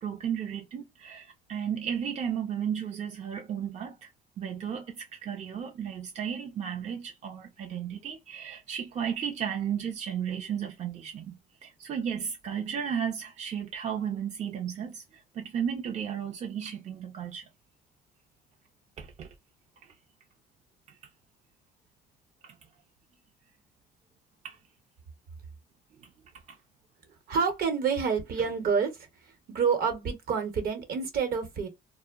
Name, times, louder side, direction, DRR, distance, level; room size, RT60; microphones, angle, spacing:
voice 1, 0.0-4.1 4.4-17.4 19.0-19.3 22.4-22.5 24.4-24.6, right 8 dB, 40° right, 0.5 m, -34 dB
voice 2, 27.3-28.9 29.5-31.7, right 6 dB, 60° right, 0.9 m, -28 dB
2.2 x 2.0 x 3.4 m
cardioid pair, 110°, 17 cm